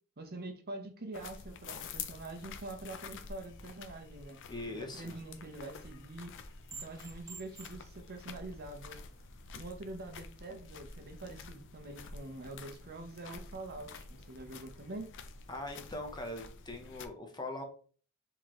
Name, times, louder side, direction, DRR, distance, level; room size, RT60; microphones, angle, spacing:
voice 1, 0.2-4.4 4.7-6.3 6.8-9.0 9.6-15.1, right 2 dB, 45° right, 5 dB, 0.8 m, -45 dB
sound 1, 1.1-17.1, left 5 dB, 55° left, 0.5 m, -49 dB
voice 2, 4.5-5.2 15.5-17.6, left 2 dB, 20° left, 3 dB, 0.8 m, -41 dB
sound 2, 5.4-10.2, right 4 dB, 15° right, 0.4 m, -54 dB
4.6 x 3.7 x 3.0 m, 0.41 s
head